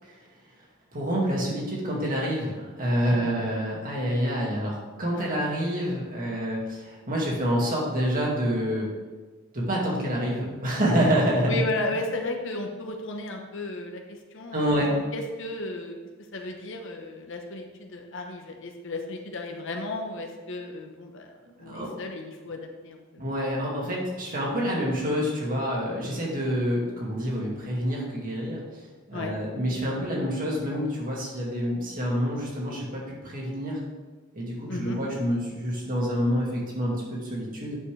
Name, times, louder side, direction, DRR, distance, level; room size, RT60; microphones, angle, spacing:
voice 1, 0.9-8.9 9.5-11.6 14.5-14.9 21.7-21.9 23.2-28.8 29.1-33.8 34.3-37.8, equal, 40° right, -3 dB, 2.2 m, -27 dB
voice 2, 11.4-16.0 16.3-21.3 21.6-23.2 29.1-29.3 34.7-35.0, left 2 dB, 65° left, 3 dB, 1.1 m, -34 dB
9.6 x 6.9 x 3.4 m, 1.3 s
head